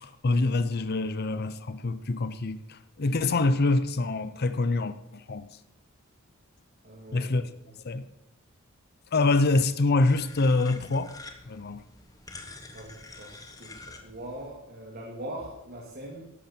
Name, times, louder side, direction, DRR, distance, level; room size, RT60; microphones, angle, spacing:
voice 1, 0.0-5.5 7.1-7.5 7.8-8.0 9.1-11.1 11.5-11.8, left 3 dB, 50° left, 0.6 m, -25 dB
voice 2, 6.8-7.7 12.7-16.3, right 1 dB, 50° right, 2.4 m, -42 dB
sound 1, 10.0-14.5, left 3 dB, 15° left, 1.2 m, -47 dB
13.5 x 11.0 x 4.4 m
head